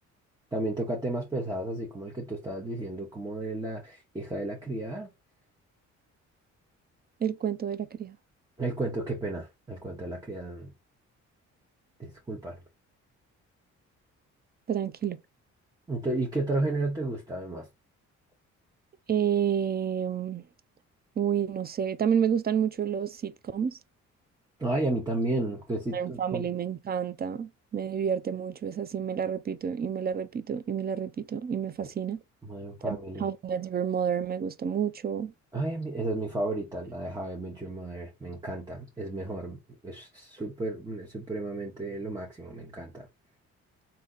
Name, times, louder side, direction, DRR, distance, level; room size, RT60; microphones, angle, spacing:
voice 1, 0.5-5.1 8.6-10.7 12.0-12.6 15.9-17.7 24.6-26.4 31.8-31.9 32.4-33.3 35.5-43.1, right 2 dB, 15° right, 1.1 m, -33 dB
voice 2, 7.2-8.2 14.7-15.2 19.1-20.4 21.2-23.8 25.9-32.2 32.8-35.3, right 8 dB, 30° right, 0.5 m, -29 dB
3.5 x 2.8 x 3.9 m
cardioid pair, 90°, 30 cm